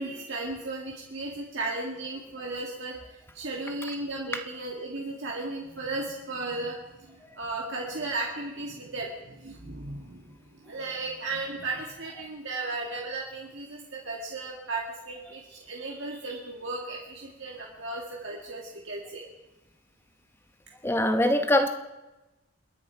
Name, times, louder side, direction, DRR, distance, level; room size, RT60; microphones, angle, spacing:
voice 1, 0.0-19.3, right 2 dB, 60° right, -2 dB, 2.0 m, -35 dB
voice 2, 20.8-21.7, left 1 dB, 10° left, 7 dB, 0.9 m, -22 dB
29.0 x 10.5 x 4.5 m, 1.0 s
head